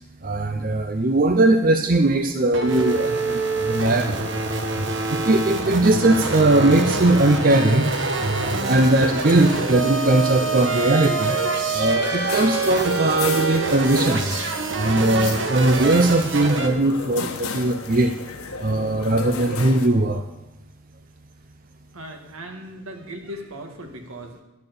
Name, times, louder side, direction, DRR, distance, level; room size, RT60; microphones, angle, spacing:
voice 1, 0.2-4.2 4.7-7.9 8.2-11.4 11.7-14.4 14.7-18.2 18.6-20.2, right 2 dB, 40° right, 6 dB, 0.6 m, -20 dB
sound 1, 2.5-16.7, right 4 dB, 60° right, 1.5 m, -25 dB
sound 2, 4.9-19.9, left 4 dB, 85° left, 1.5 m, -35 dB
Chink clink, 12.0-16.5, right 2 dB, 45° left, 0.8 m, -36 dB
voice 2, 21.9-24.4, equal, 80° right, 4 dB, 2.1 m, -38 dB
10.5 x 10.5 x 7.0 m, 0.96 s
head